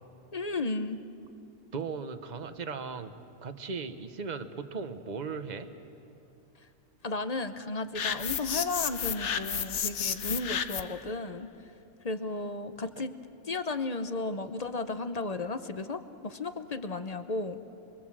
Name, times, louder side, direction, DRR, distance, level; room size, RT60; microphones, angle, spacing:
voice 1, 0.3-1.0 7.0-11.5 12.0-13.1 13.4-17.6, left 3 dB, 35° left, 9 dB, 0.9 m, -34 dB
voice 2, 1.7-3.1 3.4-5.7, right 5 dB, 35° right, 9 dB, 1.1 m, -37 dB
sound 1, 7.9-11.0, left 8 dB, 60° left, 1.1 m, -32 dB
29.5 x 22.5 x 7.5 m, 2.7 s
omnidirectional pair, 1.4 m